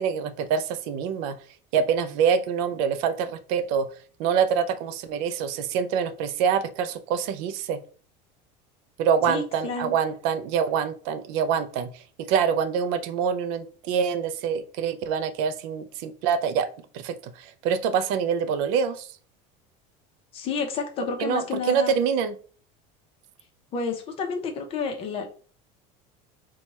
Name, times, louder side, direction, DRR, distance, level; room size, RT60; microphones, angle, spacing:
voice 1, 0.0-1.4 1.7-3.9 4.2-7.8 9.0-11.9 12.3-16.7 16.9-19.1 21.2-22.3, right 7 dB, 65° right, 12 dB, 0.5 m, -25 dB
voice 2, 9.3-9.9 20.3-22.0 23.7-25.3, left 5 dB, 35° left, 4 dB, 0.8 m, -30 dB
4.5 x 2.3 x 4.2 m, 0.43 s
cardioid pair, 160°, 17 cm